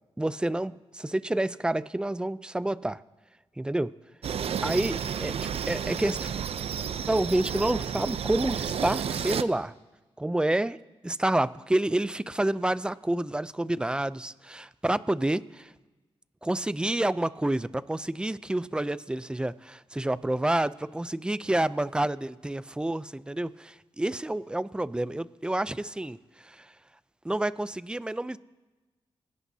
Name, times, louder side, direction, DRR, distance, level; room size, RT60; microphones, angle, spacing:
voice 1, 0.2-3.0 3.6-3.9 4.6-5.4 5.7-6.3 7.1-9.7 10.2-10.8 11.0-15.7 16.4-26.2 26.4-26.7 27.2-28.4, right 1 dB, 10° right, 15 dB, 0.5 m, -28 dB
sound 1, 4.2-9.4, right 8 dB, 75° right, 0.6 m, -31 dB
29.0 x 17.0 x 2.8 m, 1.2 s
wide cardioid pair, 100°, 10 cm